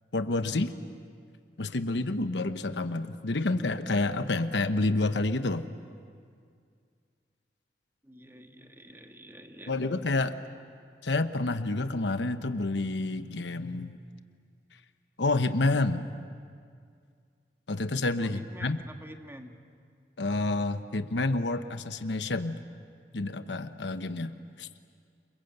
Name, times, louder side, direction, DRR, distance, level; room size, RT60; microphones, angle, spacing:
voice 1, 0.1-0.7 1.6-5.6 9.7-10.4 11.0-14.0 15.2-16.1 17.7-18.8 20.2-22.6 23.1-24.3 24.6-24.7, left 2 dB, 85° left, 10 dB, 1.0 m, -29 dB
voice 2, 8.0-9.7 18.2-19.6, right 1 dB, 15° right, 5 dB, 1.5 m, -48 dB
29.0 x 22.5 x 8.1 m, 2.2 s
head